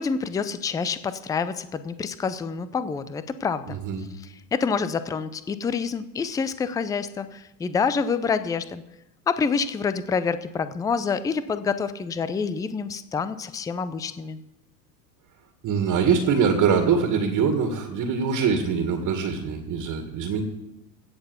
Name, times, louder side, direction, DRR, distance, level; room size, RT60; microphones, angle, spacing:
voice 1, 0.0-3.8 4.2-8.8 9.3-14.4, left 5 dB, 10° left, 13 dB, 0.4 m, -27 dB
voice 2, 3.7-4.0 15.6-20.4, right 6 dB, 40° right, 5 dB, 2.0 m, -23 dB
16.5 x 6.6 x 7.0 m, 0.91 s
hypercardioid pair, 100°, 49 cm